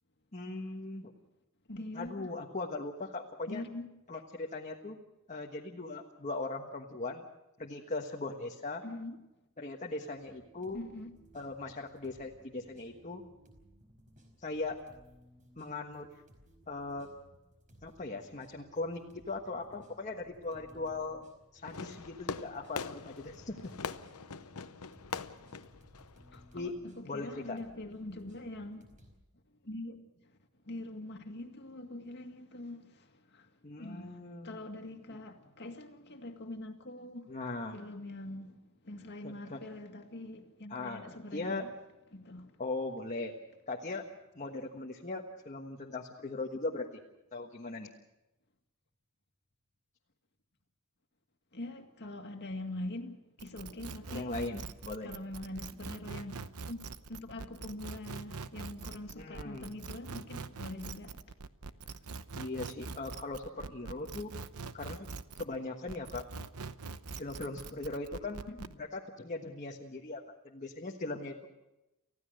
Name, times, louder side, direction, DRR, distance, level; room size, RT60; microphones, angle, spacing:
voice 1, 0.3-1.1 1.9-3.6 4.1-5.0 5.3-7.2 7.6-8.8 9.6-10.8 11.3-13.2 14.4-14.8 15.6-16.1 16.7-17.1 17.8-19.0 19.3-21.2 21.5-23.7 26.5-26.8 27.0-27.6 33.6-34.6 35.1-35.2 37.3-37.8 39.2-39.6 40.7-41.0 41.3-41.6 42.6-43.3 43.7-44.1 44.3-47.0 47.3-47.9 54.1-55.1 59.1-59.7 62.3-64.3 64.7-65.1 65.3-66.2 67.1-68.4 68.8-71.5, left 2 dB, 35° left, 1.4 m, -39 dB
voice 2, 1.7-2.3 3.5-3.9 8.8-9.2 10.7-11.2 26.3-29.0 29.6-30.3 30.6-33.5 33.8-37.4 37.7-41.7 42.1-42.6 51.5-54.4 55.0-56.8 57.1-61.3 61.8-62.0 68.5-68.7, left 1 dB, 50° left, 2.1 m, -44 dB
sound 1, 10.1-29.2, equal, 35° right, 5.0 m, -61 dB
Fireworks, 21.6-26.7, left 5 dB, 80° left, 0.9 m, -43 dB
sound 2, 53.4-65.6 65.9-68.7, right 4 dB, 90° right, 0.9 m, -43 dB
30.0 x 15.5 x 6.5 m
head